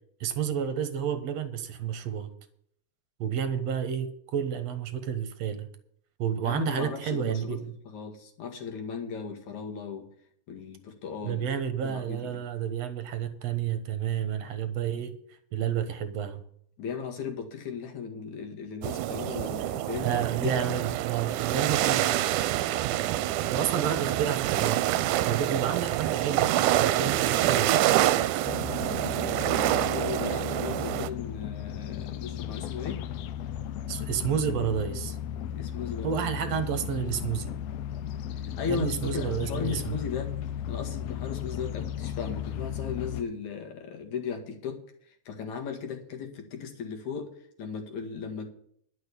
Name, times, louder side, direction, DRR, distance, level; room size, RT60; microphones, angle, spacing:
voice 1, 0.2-2.3 3.2-5.7 6.2-7.7 11.2-15.2 15.5-16.4 20.0-22.2 23.5-24.8 25.3-27.7 33.9-35.2 36.0-37.5 38.7-40.0, right 8 dB, 60° right, 10 dB, 2.1 m, -30 dB
voice 2, 6.4-10.1 10.5-11.5 11.8-12.4 16.8-20.8 29.6-33.0 35.5-36.5 38.4-40.3 40.7-47.3 47.6-48.5, left 6 dB, 65° left, 3 dB, 3.2 m, -37 dB
sound 1, 18.8-31.1, right 14 dB, 85° right, 2.1 m, -26 dB
sound 2, 28.4-43.2, left 10 dB, 80° left, 1.5 m, -35 dB
11.5 x 6.4 x 8.2 m, 0.67 s
omnidirectional pair, 3.6 m